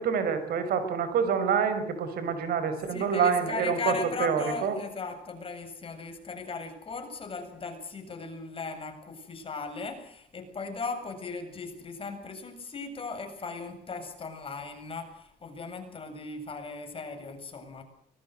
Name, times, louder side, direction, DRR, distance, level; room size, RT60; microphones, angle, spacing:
voice 1, 0.0-4.8, right 6 dB, 65° right, 10 dB, 5.7 m, -27 dB
voice 2, 2.9-17.8, left 4 dB, 30° left, 6 dB, 7.6 m, -37 dB
24.0 x 21.5 x 8.0 m, 0.64 s
cardioid pair, 110°, 17 cm